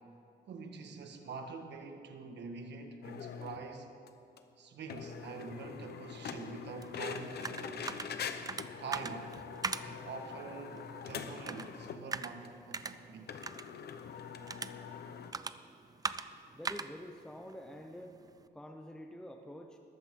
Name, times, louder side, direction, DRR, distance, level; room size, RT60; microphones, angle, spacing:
voice 1, 0.5-3.9 4.6-7.9 8.8-9.3 9.7-13.3, right 4 dB, 75° right, 5 dB, 1.5 m, -45 dB
sound 1, 3.0-3.6 4.1-4.2 4.4-4.5 4.9-12.1 12.4-12.5 12.7-12.8 13.3-15.3, left 7 dB, 65° left, 0.9 m, -44 dB
sound 2, 6.8-18.5, right 4 dB, 20° right, 0.4 m, -43 dB
voice 2, 16.5-18.2 18.5-19.8, equal, 5° left, 3 dB, 0.7 m, -47 dB
20.5 x 14.5 x 3.7 m, 2.7 s
wide cardioid pair, 150°, 18 cm